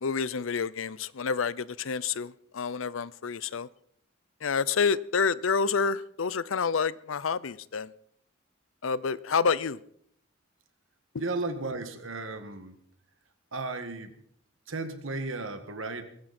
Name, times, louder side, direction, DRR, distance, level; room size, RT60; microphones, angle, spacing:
voice 1, 0.0-3.7 4.4-7.9 8.8-9.8, left 5 dB, 90° left, 0.6 m, -28 dB
voice 2, 11.2-12.8 13.5-14.2 14.7-16.0, right 3 dB, 90° right, 1.9 m, -34 dB
20.5 x 16.5 x 4.3 m
head